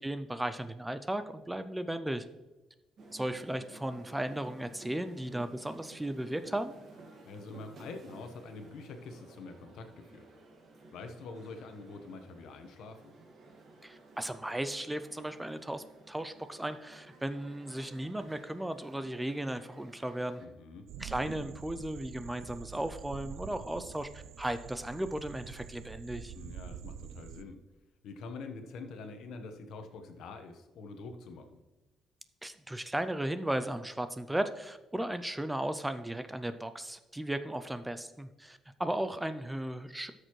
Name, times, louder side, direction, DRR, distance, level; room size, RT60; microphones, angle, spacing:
voice 1, 0.0-2.2 3.1-6.7 13.8-20.4 21.0-26.3 32.4-40.1, right 1 dB, 5° right, 10 dB, 0.3 m, -36 dB
sound 1, 3.0-20.4, right 3 dB, 45° right, 1.7 m, -54 dB
voice 2, 7.3-10.3 10.9-13.1 20.4-20.9 26.3-27.6 28.0-31.5, left 3 dB, 70° left, 6 dB, 1.1 m, -45 dB
sound 2, 20.9-27.4, right 9 dB, 75° right, 0.4 m, -46 dB
13.0 x 6.5 x 3.1 m, 1.1 s
cardioid pair, 165°, 0 cm